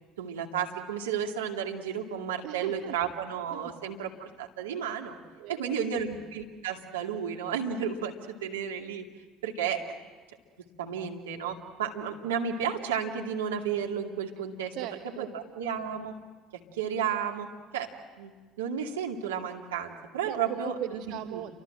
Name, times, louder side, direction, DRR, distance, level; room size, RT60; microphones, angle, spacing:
voice 1, 0.2-5.1 5.5-8.1 8.4-9.0 9.4-10.0 10.8-14.7 15.2-16.1 16.8-17.5 17.7-17.9 18.2-18.3 18.6-21.0 21.3-21.4, right 7 dB, 80° right, 2 dB, 2.4 m, -32 dB
voice 2, 2.4-3.0 3.5-3.7 5.4-6.0 14.7-15.4 20.2-21.6, right 15 dB, 65° right, 7 dB, 1.0 m, -39 dB
29.5 x 24.5 x 7.8 m, 1.4 s
hypercardioid pair, 65°, 0 cm